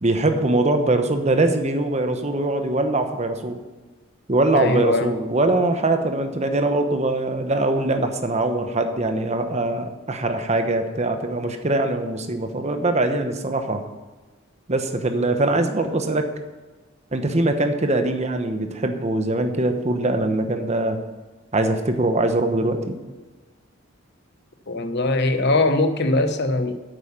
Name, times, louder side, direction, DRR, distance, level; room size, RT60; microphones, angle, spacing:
voice 1, 0.0-3.6 4.3-13.8 14.7-16.3 17.1-21.0 21.5-23.0, right 2 dB, 35° right, 7 dB, 0.9 m, -22 dB
voice 2, 4.5-5.2 24.7-26.7, left 2 dB, 55° left, 9 dB, 0.9 m, -21 dB
8.8 x 8.1 x 5.7 m, 1.2 s
head